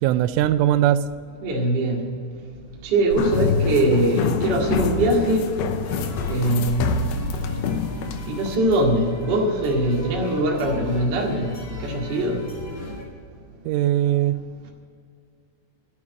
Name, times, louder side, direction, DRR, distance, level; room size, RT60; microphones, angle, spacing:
voice 1, 0.0-1.1 13.7-14.4, right 12 dB, 90° right, 13 dB, 3.1 m, -20 dB
voice 2, 1.4-2.0 2.8-5.5 6.3-7.0 8.3-11.5 11.8-12.4, right 1 dB, 70° right, -1 dB, 1.0 m, -22 dB
sound 1, 3.1-8.6, left 5 dB, 85° left, 2.3 m, -26 dB
sound 2, 5.8-13.0, left 2 dB, 20° left, 1.6 m, -36 dB
12.5 x 7.3 x 9.7 m, 2.3 s
omnidirectional pair, 5.6 m